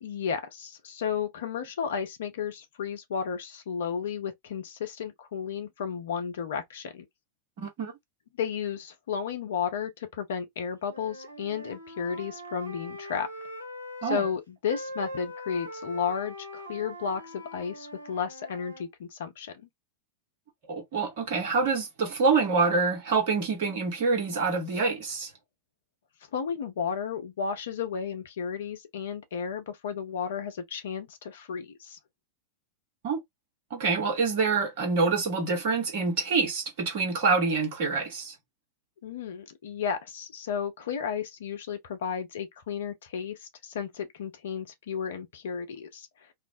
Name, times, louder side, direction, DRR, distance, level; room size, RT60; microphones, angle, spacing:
voice 1, 0.0-7.1 8.3-13.3 14.0-19.7 26.3-32.0 39.0-46.1, left 7 dB, 60° left, 0.6 m, -33 dB
voice 2, 7.6-7.9 14.0-14.2 20.7-25.3 33.0-33.2 33.7-38.3, right 4 dB, 50° right, 1.1 m, -26 dB
Wind instrument woodwind instrument, 10.8-14.3 14.7-18.9, equal, 85° right, 0.6 m, -42 dB
2.4 x 2.0 x 2.6 m
figure-of-eight pair, 90°, 0 cm